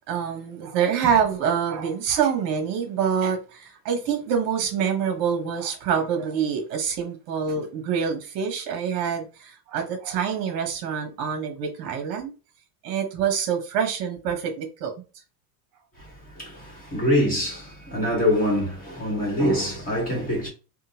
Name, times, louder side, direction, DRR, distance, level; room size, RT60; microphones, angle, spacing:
voice 1, 0.1-12.3 12.8-14.9, right 7 dB, 45° right, 1.0 m, -26 dB
voice 2, 16.0-20.5, left 1 dB, 15° left, 1.4 m, -25 dB
3.7 x 2.3 x 2.7 m
supercardioid pair, 165°, 49 cm